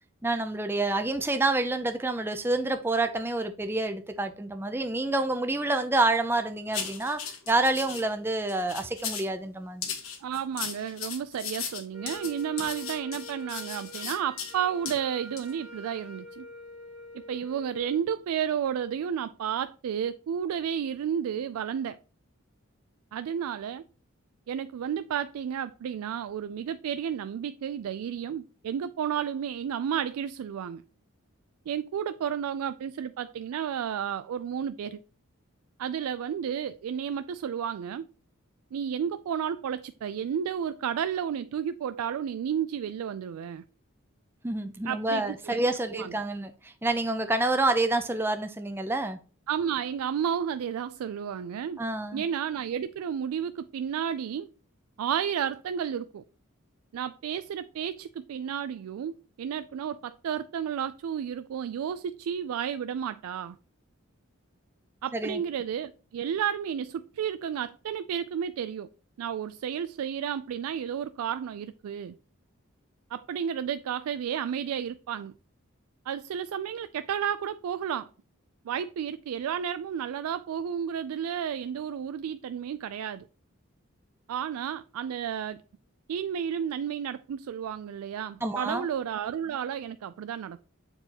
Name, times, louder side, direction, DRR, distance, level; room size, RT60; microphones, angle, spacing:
voice 1, 0.2-7.2 7.5-9.9 44.4-49.2 51.8-52.2 65.1-65.4 88.4-88.8, right 2 dB, 10° right, 0.4 m, -28 dB
sound 1, 6.7-8.0 8.5-9.3 9.8-14.5 14.9-15.0 15.4-15.5, left 7 dB, 80° left, 1.4 m, -36 dB
voice 2, 10.2-16.4 17.1-22.0 23.1-23.8 24.5-30.8 31.7-35.0 35.8-38.1 38.7-43.6 44.8-45.7 45.9-46.1 49.5-51.8 52.1-54.5 55.0-56.2 56.9-63.6 65.0-68.9 69.2-72.2 73.1-75.3 76.1-78.1 78.6-83.3 84.3-85.6 86.1-90.6, right 8 dB, 85° right, 0.3 m, -32 dB
Wind instrument woodwind instrument, 11.9-18.0, left 1 dB, 30° left, 1.5 m, -45 dB
7.6 x 4.5 x 2.9 m
head